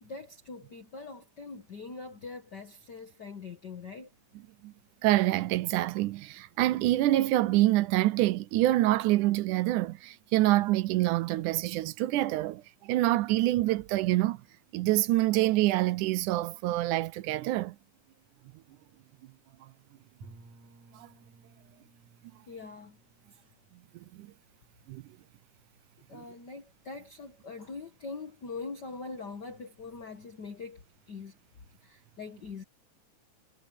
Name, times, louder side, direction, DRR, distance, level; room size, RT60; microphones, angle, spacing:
voice 1, 0.0-4.1 22.5-23.0 23.3-23.4 26.1-31.3 31.8-32.6, left 4 dB, 50° left, 1.3 m, -43 dB
voice 2, 5.0-14.4 14.7-17.8 20.9-21.1 24.1-24.3 24.9-25.0 26.1-26.2, right 16 dB, 80° right, 2.0 m, -26 dB
Bowed string instrument, 20.2-25.0, right 3 dB, 60° right, 8.6 m, -57 dB
omnidirectional pair, 3.7 m